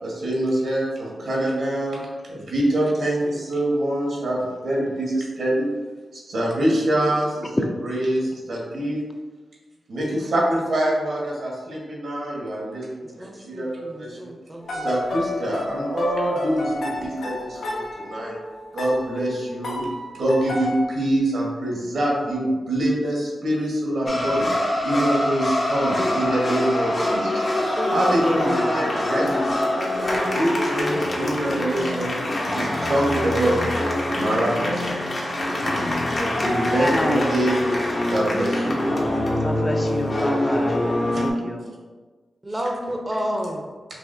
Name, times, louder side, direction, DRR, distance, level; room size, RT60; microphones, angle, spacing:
voice 1, 0.0-2.0 2.3-5.7 6.1-7.5 7.8-9.0 9.9-14.3 14.7-18.4 18.7-19.9 20.1-24.5 24.8-27.4 27.9-29.6 30.2-32.2 32.5-33.7 34.1-34.9 36.1-37.6 38.0-38.8 41.1-41.2, right 1 dB, 80° right, -4 dB, 1.3 m, -25 dB
voice 2, 13.2-14.9 27.8-28.2 35.5-36.0 42.4-43.7, equal, 20° right, 1 dB, 0.6 m, -31 dB
sound 1, 14.6-20.8, left 2 dB, 80° left, 0.7 m, -31 dB
sound 2, 24.1-41.3, left 1 dB, 55° left, 0.9 m, -24 dB
voice 3, 28.2-28.8 29.2-29.6 36.6-37.5 39.4-40.8 41.1-41.7, left 1 dB, 25° left, 3 dB, 0.5 m, -28 dB
4.7 x 2.8 x 2.7 m, 1.3 s
cardioid pair, 55°, 0 cm